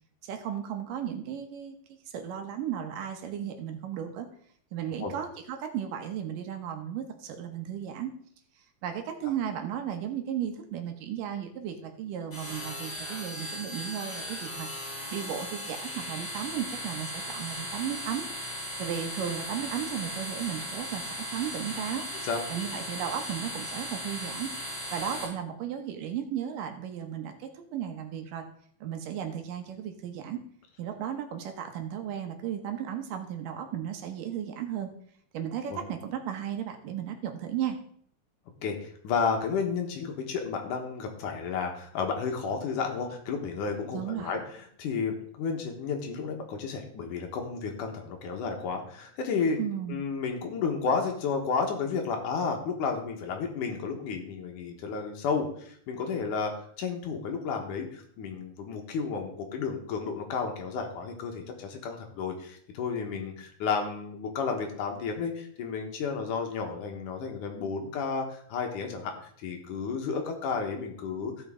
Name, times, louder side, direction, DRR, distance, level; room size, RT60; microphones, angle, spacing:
voice 1, 0.2-1.8 2.1-4.3 4.7-8.1 8.8-18.3 18.8-22.0 22.5-24.5 24.9-28.5 28.8-30.4 30.8-34.9 35.3-37.8 43.9-44.3 49.6-50.0, right 9 dB, 80° right, 5 dB, 2.7 m, -35 dB
sound 1, 12.3-25.3, equal, 30° left, 5.3 m, -37 dB
voice 2, 38.6-44.4 44.8-49.6 49.9-56.5 56.8-69.1 69.4-71.5, left 5 dB, 70° left, 3 dB, 2.8 m, -32 dB
15.5 x 6.0 x 3.7 m, 0.62 s
omnidirectional pair, 3.8 m